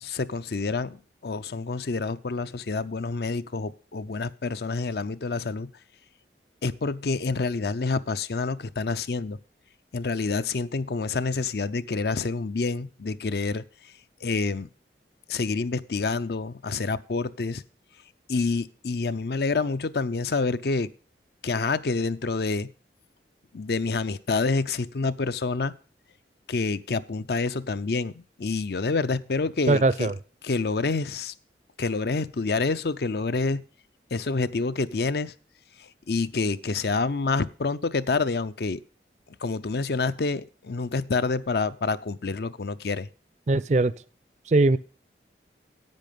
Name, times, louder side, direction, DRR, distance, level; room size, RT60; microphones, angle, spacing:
voice 1, 0.0-5.7 6.6-9.4 9.9-13.9 14.2-14.7 15.3-17.6 18.3-20.9 21.4-22.7 23.5-25.7 26.5-30.1 30.4-31.3 31.8-33.7 34.1-35.3 35.8-38.8 39.4-43.1, left 4 dB, 60° left, 0.5 m, -28 dB
voice 2, 29.7-30.1 43.5-43.9 44.5-44.8, right 2 dB, 40° right, 0.4 m, -20 dB
10.5 x 8.4 x 5.3 m
head